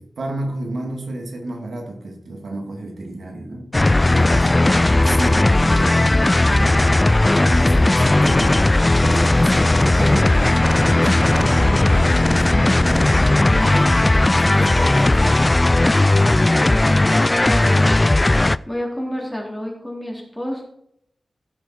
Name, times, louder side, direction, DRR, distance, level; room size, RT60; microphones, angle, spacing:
voice 1, 0.0-3.7 4.1-7.0 7.3-8.7 9.0-10.4 10.6-15.4, right 2 dB, 80° right, 1 dB, 2.6 m, -31 dB
sound 1, 3.7-18.6, left 2 dB, 25° left, 0.3 m, -16 dB
voice 2, 16.5-20.6, equal, ahead, -2 dB, 3.6 m, -30 dB
16.0 x 7.1 x 4.6 m, 0.74 s
wide cardioid pair, 100°, 0 cm